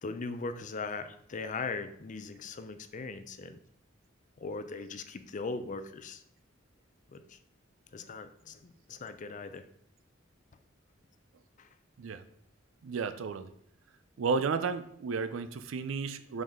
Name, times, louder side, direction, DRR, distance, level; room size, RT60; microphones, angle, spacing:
voice 1, 0.0-3.6 4.4-6.2 7.1-7.4 7.9-9.7 11.6-11.7, left 4 dB, 40° left, 9 dB, 0.5 m, -39 dB
voice 2, 12.8-13.5 14.2-16.4, right 5 dB, 80° right, 11 dB, 0.4 m, -33 dB
5.5 x 5.3 x 3.6 m, 0.70 s
head